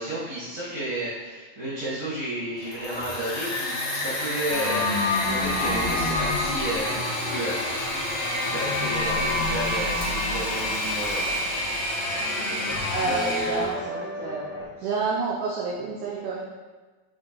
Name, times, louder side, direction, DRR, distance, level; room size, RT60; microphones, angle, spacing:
voice 1, 0.0-4.9 5.2-7.6 8.5-11.5, right 1 dB, 50° right, -10 dB, 1.6 m, -32 dB
Engine / Mechanisms, 2.5-13.7, left 1 dB, 55° left, 2.2 m, -30 dB
sound 1, 4.5-14.7, left 2 dB, 80° left, 3.9 m, -30 dB
voice 2, 12.9-14.4 14.8-16.4, right 4 dB, 90° right, -5 dB, 2.2 m, -29 dB
9.6 x 3.7 x 3.2 m, 1.3 s
omnidirectional pair, 5.7 m